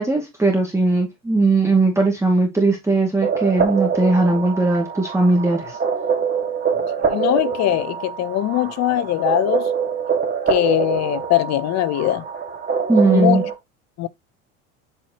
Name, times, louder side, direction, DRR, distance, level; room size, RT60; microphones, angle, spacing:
voice 1, 0.0-5.8 12.9-13.4, right 2 dB, 5° right, 2.2 m, -18 dB
sound 1, 3.2-13.5, right 6 dB, 25° right, 1.9 m, -24 dB
voice 2, 7.1-9.7 10.5-12.2 13.1-13.4 14.0-14.1, left 14 dB, 45° left, 0.7 m, -21 dB
7.8 x 4.5 x 2.9 m
hypercardioid pair, 90°, 39 cm